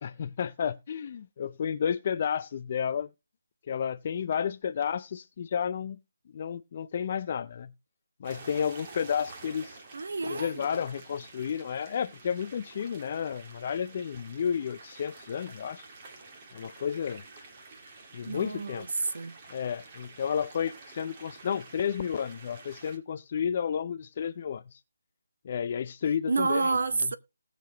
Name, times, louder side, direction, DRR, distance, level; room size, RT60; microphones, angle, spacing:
voice 1, 0.0-3.1 3.7-6.0 6.3-7.7 8.2-9.8 10.3-15.9 16.5-17.2 18.1-18.9 19.5-24.8 25.4-26.8, left 7 dB, 30° left, 0.4 m, -32 dB
sound 1, 8.2-23.0, right 3 dB, 25° right, 1.7 m, -49 dB
voice 2, 9.9-10.6 18.3-19.4 26.3-27.2, right 3 dB, 60° right, 1.1 m, -29 dB
19.5 x 6.6 x 2.9 m
hypercardioid pair, 170°, 0 cm